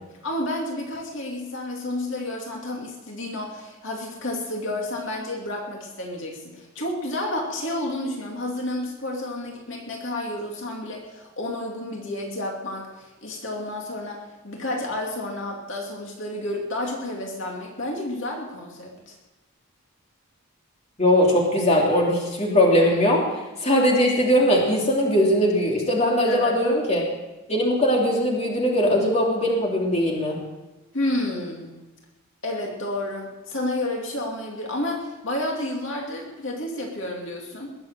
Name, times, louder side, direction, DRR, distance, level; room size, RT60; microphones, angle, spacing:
voice 1, 0.2-19.1 26.3-26.6 30.9-31.8 32.4-37.7, left 1 dB, 60° left, -1 dB, 2.5 m, -30 dB
voice 2, 21.0-23.2 23.6-27.1 27.5-30.4, equal, 30° left, -2 dB, 3.1 m, -20 dB
21.0 x 7.7 x 7.6 m, 1.1 s
head